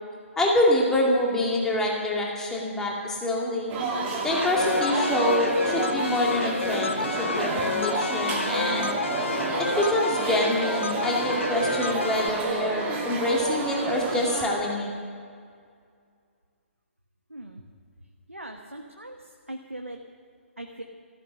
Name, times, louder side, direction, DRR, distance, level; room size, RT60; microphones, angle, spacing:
voice 1, 0.4-3.7 4.2-8.9 9.7-14.9, left 1 dB, 5° left, -2 dB, 2.3 m, -26 dB
sound 1, 3.7-14.5, right 4 dB, 20° right, 2.6 m, -30 dB
sound 2, 4.3-12.3, left 3 dB, 70° left, 1.3 m, -30 dB
voice 2, 18.3-19.2 19.5-20.0 20.6-20.8, right 1 dB, 85° right, 2 dB, 1.3 m, -39 dB
14.5 x 14.0 x 6.6 m, 2.2 s
figure-of-eight pair, 130°, 7 cm